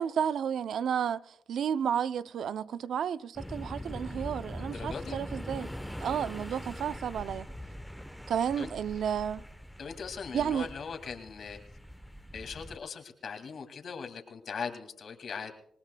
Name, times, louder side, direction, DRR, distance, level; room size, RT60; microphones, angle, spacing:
voice 1, 0.0-5.7 6.0-7.5 8.3-9.4 10.3-10.7, right 8 dB, 80° right, 0.4 m, -32 dB
sound 1, 3.4-12.8, equal, ahead, 0.9 m, -42 dB
voice 2, 4.6-5.2 8.6-8.7 9.8-11.6 12.3-15.5, left 6 dB, 70° left, 2.1 m, -40 dB
27.0 x 18.5 x 2.2 m
cardioid pair, 65°, 0 cm